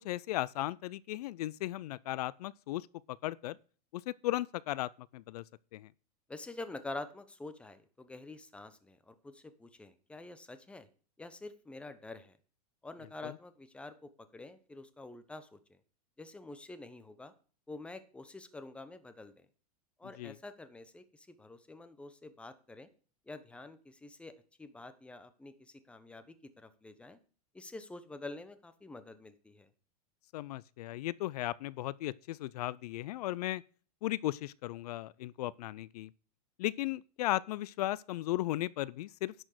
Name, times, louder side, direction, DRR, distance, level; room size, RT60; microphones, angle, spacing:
voice 1, 0.0-3.6 3.9-5.4 5.7-5.9 13.2-13.4 20.2-20.4 30.3-33.6 34.0-36.1 36.6-39.3, left 16 dB, 75° left, 0.5 m, -36 dB
voice 2, 6.3-10.9 11.2-12.4 12.8-15.8 16.2-17.3 17.7-19.5 20.0-22.9 23.3-24.3 24.6-27.2 27.5-29.7, left 2 dB, 5° left, 0.9 m, -47 dB
11.0 x 6.3 x 6.6 m
supercardioid pair, 150°, 20 cm